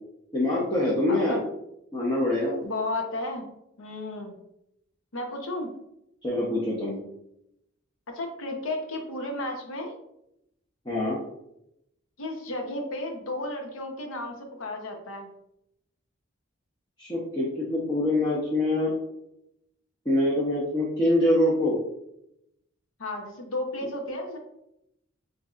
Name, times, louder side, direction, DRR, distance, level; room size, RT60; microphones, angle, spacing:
voice 1, 0.3-1.4 1.9-2.6 6.2-7.0 10.8-11.2 17.0-18.9 20.0-21.8 23.8-23.9, left 1 dB, 20° left, -5 dB, 0.9 m, -24 dB
voice 2, 1.1-1.4 2.6-3.5 3.8-4.4 5.1-5.7 8.1-9.9 12.2-15.3 23.0-24.4, left 2 dB, 80° left, 2 dB, 0.9 m, -33 dB
7.5 x 2.8 x 2.5 m, 0.81 s
head